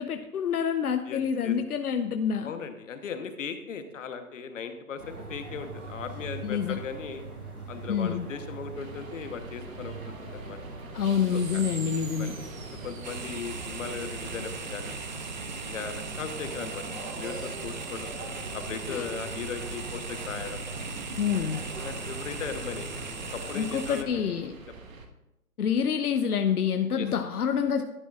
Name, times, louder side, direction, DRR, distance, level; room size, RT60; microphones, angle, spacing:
voice 1, 0.0-2.5 6.4-6.8 7.9-8.3 10.9-12.4 18.9-19.0 21.2-21.6 23.5-24.5 25.6-27.8, left 7 dB, 80° left, 7 dB, 0.7 m, -27 dB
voice 2, 1.0-1.5 2.4-7.2 7.7-10.6 11.3-11.6 12.2-12.4 12.8-15.0 15.6-16.8 17.1-18.1 18.5-20.6 21.8-23.0 23.3-24.6 27.0-27.1, left 6 dB, 55° left, 8 dB, 1.2 m, -38 dB
sound 1, 5.0-24.2, right 2 dB, 85° right, 3.7 m, -42 dB
sound 2, 8.7-25.1, right 3 dB, 65° right, 1.5 m, -43 dB
sound 3, 13.0-24.0, right 5 dB, 35° right, 0.4 m, -40 dB
11.5 x 10.0 x 2.5 m, 0.92 s
hypercardioid pair, 145°, 44 cm